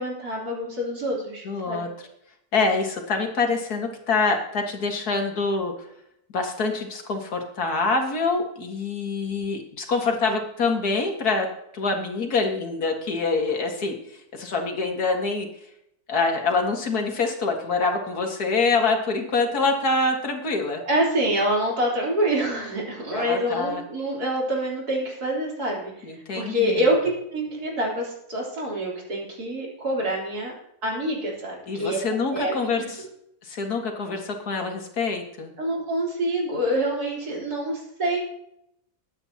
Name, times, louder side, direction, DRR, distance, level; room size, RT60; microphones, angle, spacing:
voice 1, 0.0-1.9 20.8-26.1 26.3-30.5 30.8-32.0 32.3-32.9 35.6-38.2, right 1 dB, 90° right, -3 dB, 4.2 m, -26 dB
voice 2, 1.4-1.9 2.5-5.7 6.3-11.5 11.7-14.0 14.3-15.5 16.1-20.8 23.1-23.8 26.0-26.9 31.7-33.1 33.4-35.5, left 3 dB, 80° left, 3 dB, 2.4 m, -25 dB
21.0 x 9.1 x 2.9 m, 0.77 s
omnidirectional pair, 1.6 m